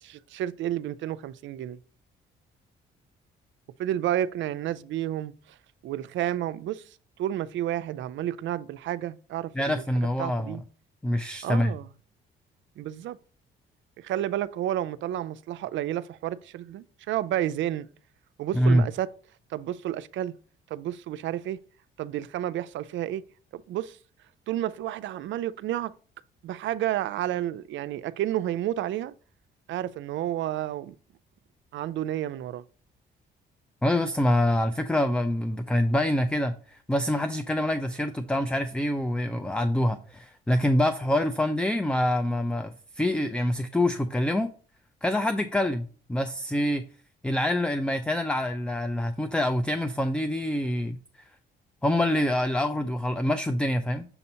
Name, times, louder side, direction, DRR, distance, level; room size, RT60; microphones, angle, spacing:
voice 1, 0.0-1.8 3.8-5.6 5.8-6.8 7.2-9.8 10.2-10.6 11.4-11.9 12.8-13.2 14.0-17.9 18.4-19.1 19.5-20.3 20.7-21.6 22.0-23.2 23.5-24.0 24.5-25.9 26.4-29.1 29.7-30.9 31.7-32.6, right 12 dB, 70° right, 0.4 m, -31 dB
voice 2, 9.5-10.6 11.0-11.7 18.5-18.9 33.8-44.5 45.0-46.8 47.2-51.0 51.8-54.1, left 1 dB, 5° left, 0.4 m, -25 dB
6.9 x 2.8 x 5.4 m
cardioid pair, 90°, 20 cm